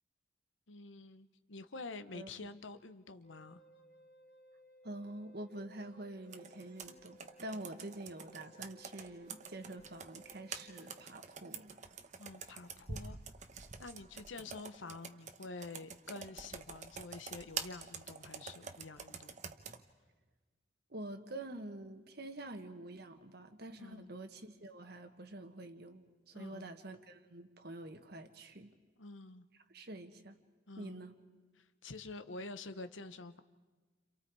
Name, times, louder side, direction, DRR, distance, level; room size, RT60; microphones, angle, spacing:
voice 1, 0.7-3.6 12.2-13.2 13.8-19.3 23.8-24.1 26.3-26.8 29.0-29.5 30.7-31.1 31.6-33.4, left 3 dB, 85° left, 11 dB, 1.0 m, -48 dB
Wind instrument woodwind instrument, 3.2-11.1, equal, 60° left, 2.3 m, -62 dB
voice 2, 4.8-11.8 20.9-28.7 29.7-30.4 30.8-31.1, right 1 dB, 55° right, 7 dB, 1.5 m, -47 dB
Computer keyboard, 6.3-19.8, right 6 dB, 40° right, 1.0 m, -47 dB
30.0 x 27.0 x 4.8 m, 1.3 s
head